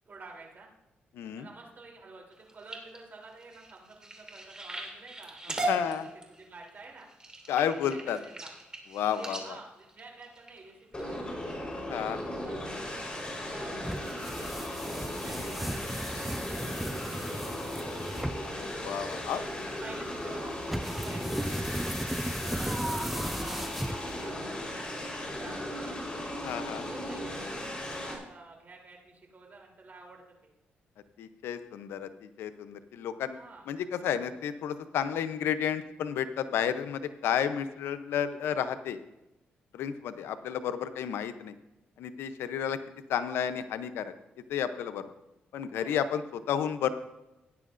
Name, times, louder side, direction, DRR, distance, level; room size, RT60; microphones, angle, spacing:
voice 1, 0.0-0.7 1.2-6.0 6.3-7.1 7.5-8.5 9.2-11.6 12.0-18.5 19.6-21.8 22.4-25.9 26.8-30.2 33.3-33.7 45.7-46.0, right 3 dB, 50° right, -1 dB, 3.2 m, -50 dB
voice 2, 1.1-1.5 5.7-6.1 7.5-8.2 8.9-9.6 11.9-12.2 18.6-19.4 26.4-26.8 31.2-33.4 33.7-39.0 39.7-41.5 42.0-42.8 43.1-44.1 44.5-45.1 45.5-46.9, left 9 dB, 90° left, 11 dB, 0.6 m, -31 dB
sound 1, 2.3-11.0 11.6-11.9 12.4-12.7 13.2-13.3 13.6-13.7, right 1 dB, 20° right, 2.8 m, -39 dB
sound 2, 10.9-28.2, left 1 dB, 25° left, 3.9 m, -37 dB
sound 3, 13.8-24.4, right 1 dB, 5° right, 0.3 m, -36 dB
16.5 x 10.0 x 2.5 m, 0.98 s
cardioid pair, 70°, 4 cm